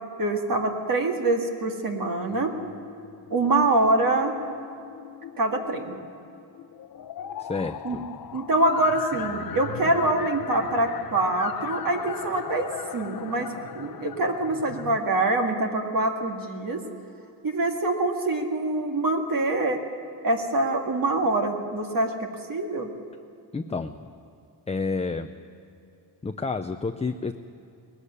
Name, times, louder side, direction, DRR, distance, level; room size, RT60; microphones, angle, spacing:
voice 1, 0.2-2.5 3.3-4.4 5.4-6.0 7.8-8.0 8.3-16.8 17.4-19.8 20.2-22.9, right 2 dB, 50° right, 2 dB, 2.2 m, -25 dB
sound 1, 2.3-15.0, left 9 dB, 50° left, 0.9 m, -38 dB
voice 2, 7.4-8.1 23.5-24.0 24.7-25.3 26.2-27.3, left 4 dB, 15° left, 7 dB, 0.6 m, -30 dB
20.0 x 15.0 x 9.8 m, 2.6 s
wide cardioid pair, 130°, 43 cm